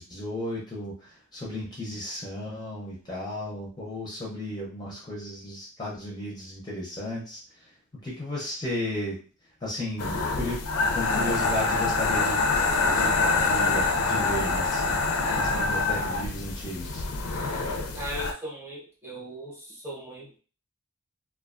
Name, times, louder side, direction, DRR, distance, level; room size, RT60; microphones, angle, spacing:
voice 1, 0.0-7.7 8.0-9.2 9.6-10.6 10.9-12.6 12.9-15.0 15.4-17.0, left 1 dB, 20° left, -5 dB, 0.5 m, -34 dB
sound 1, 10.0-18.3, left 3 dB, 80° left, 0.4 m, -25 dB
voice 2, 18.0-20.4, equal, 10° right, -5 dB, 0.7 m, -38 dB
2.3 x 2.2 x 2.4 m, 0.38 s
head